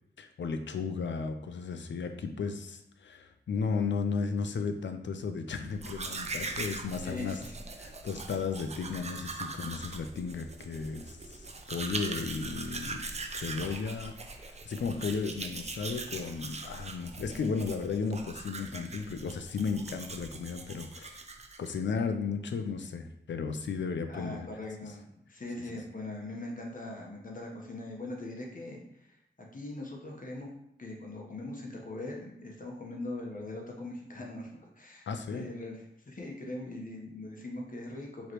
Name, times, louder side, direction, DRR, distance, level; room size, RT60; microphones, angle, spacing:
voice 1, 0.2-7.4 7.8-13.1 13.3-14.2 14.7-21.2 21.6-24.5 35.1-35.5, left 5 dB, 70° left, 7 dB, 0.5 m, -34 dB
Domestic sounds home sounds, 5.7-21.8, right 3 dB, 35° right, 0.5 m, -41 dB
voice 2, 7.0-7.6 24.1-30.5 30.8-38.3, left 2 dB, 45° left, 0 dB, 1.1 m, -41 dB
4.8 x 3.1 x 3.0 m, 0.76 s
wide cardioid pair, 70°, 19 cm